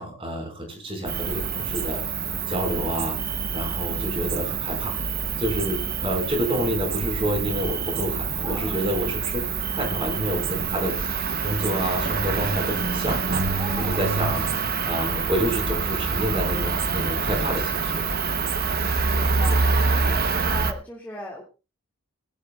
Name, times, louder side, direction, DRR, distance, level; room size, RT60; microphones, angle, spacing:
voice 1, 0.0-2.0 2.5-5.0 5.4-11.0 11.4-13.2 13.8-14.4 14.8-18.0, equal, 25° right, 3 dB, 5.3 m, -28 dB
Cricket, 1.1-20.7, right 4 dB, 45° right, 1.0 m, -26 dB
voice 2, 8.4-8.9 13.6-14.1 19.1-19.7 19.9-21.4, left 1 dB, 10° left, -5 dB, 2.4 m, -37 dB
21.5 x 12.5 x 2.4 m, 0.30 s
head